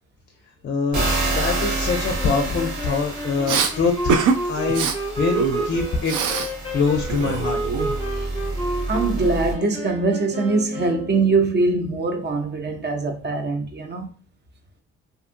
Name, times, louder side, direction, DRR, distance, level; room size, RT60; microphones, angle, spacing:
voice 1, 0.6-4.2 4.4-6.2 6.7-7.6, left 4 dB, 40° left, 0.5 m, -24 dB
sound 1, 0.9-9.5, right 2 dB, 65° right, 1.1 m, -29 dB
sound 2, 2.2-11.4, equal, 15° left, 0.9 m, -31 dB
Respiratory sounds, 3.5-3.7 4.1-4.4 4.7-4.9 5.3-6.5 6.8-8.2, right 6 dB, 85° right, 0.5 m, -23 dB
voice 2, 8.9-14.1, right 3 dB, 35° right, 0.6 m, -22 dB
2.6 x 2.5 x 2.5 m
cardioid pair, 90°, 30 cm